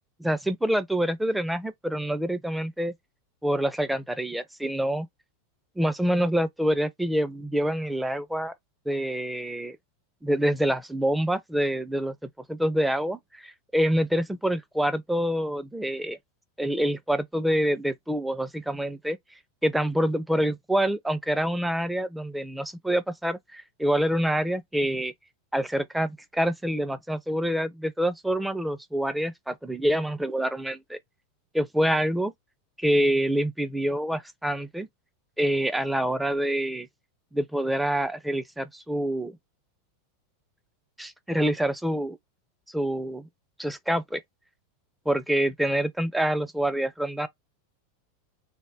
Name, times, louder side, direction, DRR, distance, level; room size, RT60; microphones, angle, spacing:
voice 1, 0.2-2.9 3.4-5.1 5.8-8.5 8.9-9.8 10.2-16.2 16.6-19.2 19.6-25.1 25.5-31.0 31.5-32.3 32.8-34.9 35.4-36.9 37.3-39.4 41.0-42.2 42.7-43.3 43.6-44.2 45.1-47.3, equal, 5° right, 0.5 m, -26 dB
3.5 x 2.6 x 2.6 m
hypercardioid pair, 120°, 0 cm